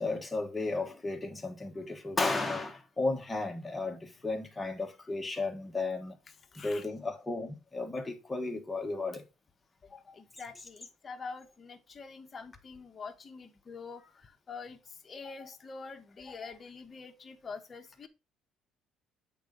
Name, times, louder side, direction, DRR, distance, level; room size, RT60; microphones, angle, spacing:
voice 1, 0.0-6.2 6.5-9.2, left 3 dB, 15° left, 1.5 m, -34 dB
voice 2, 6.5-6.9 9.8-18.1, left 4 dB, 30° left, 1.1 m, -46 dB
8.0 x 4.0 x 3.8 m
cardioid pair, 105°, 0 cm